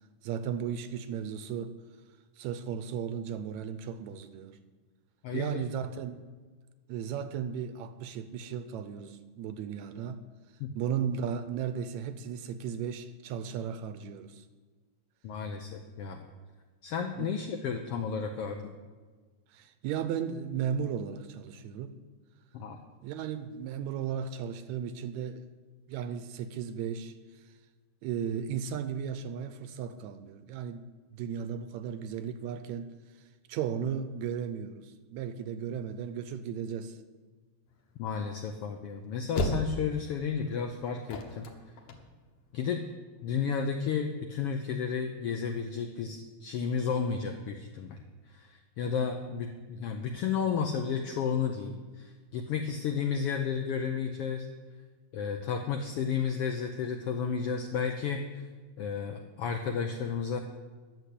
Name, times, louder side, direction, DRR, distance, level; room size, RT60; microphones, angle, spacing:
voice 1, 0.2-1.8 2.4-4.6 5.3-6.2 6.9-10.2 10.7-14.5 17.2-17.3 19.5-22.0 23.0-25.5 25.9-27.5 28.0-37.0, right 8 dB, 80° right, 1.8 m, -35 dB
voice 2, 5.2-5.6 10.6-10.7 15.2-16.3 16.8-18.7 22.5-22.8 38.0-41.5 42.5-42.9 43.2-48.0 48.3-54.5 55.1-58.4 58.8-60.4, left 6 dB, 85° left, 1.3 m, -32 dB
sound 1, 37.7-42.8, left 2 dB, 60° left, 2.0 m, -34 dB
11.5 x 6.7 x 8.2 m
omnidirectional pair, 3.5 m